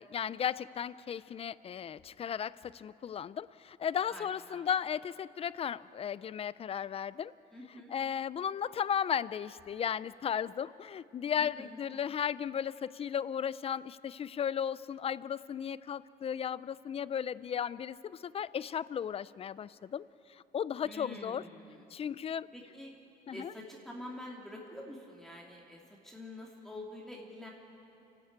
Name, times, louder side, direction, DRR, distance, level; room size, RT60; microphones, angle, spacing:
voice 1, 0.0-7.3 7.9-21.4 21.9-22.5 23.3-23.5, left 8 dB, 35° left, 18 dB, 0.5 m, -35 dB
voice 2, 4.1-4.6 7.5-7.9 11.4-11.8 20.8-21.8 22.5-22.9 23.3-27.5, left 1 dB, ahead, -2 dB, 2.7 m, -47 dB
29.0 x 12.5 x 8.7 m, 2.8 s
cardioid pair, 110°, 17 cm